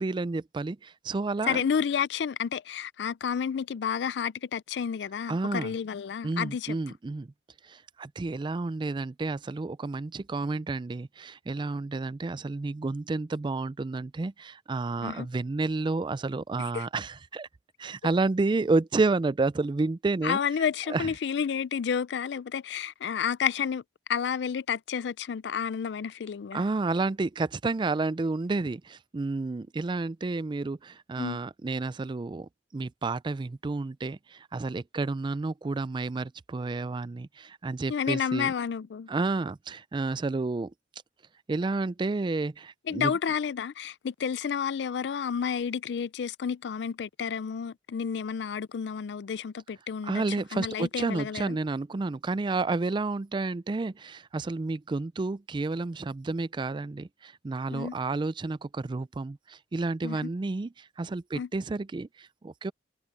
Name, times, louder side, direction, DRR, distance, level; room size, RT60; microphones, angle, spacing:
voice 1, 0.0-1.6 5.3-5.7 6.2-7.3 7.6-17.5 17.8-20.4 20.9-21.1 26.5-38.5 39.1-40.7 41.5-43.1 50.0-62.7, right 3 dB, 25° right, 0.4 m, -30 dB
voice 2, 1.4-6.8 15.0-15.3 16.7-16.9 20.2-23.8 24.1-26.6 31.2-31.4 37.9-39.1 42.9-51.6 57.7-57.9 60.0-60.3 61.3-61.5, left 7 dB, 75° left, 0.4 m, -30 dB
head